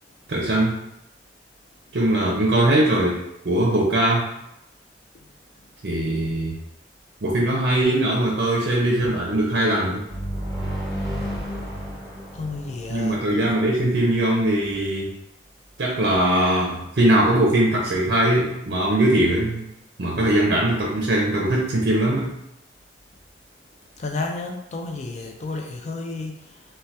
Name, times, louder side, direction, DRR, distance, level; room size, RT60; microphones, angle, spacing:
voice 1, 0.3-0.8 1.9-4.3 5.8-6.6 7.2-10.0 12.9-15.1 15.8-19.7 20.0-22.3, right 1 dB, 60° right, -3 dB, 0.5 m, -21 dB
sound 1, 10.1-13.8, equal, ahead, 1.2 m, -32 dB
voice 2, 12.3-13.6 24.0-26.6, left 3 dB, 40° left, 2 dB, 0.3 m, -32 dB
2.7 x 2.2 x 3.2 m, 0.84 s
head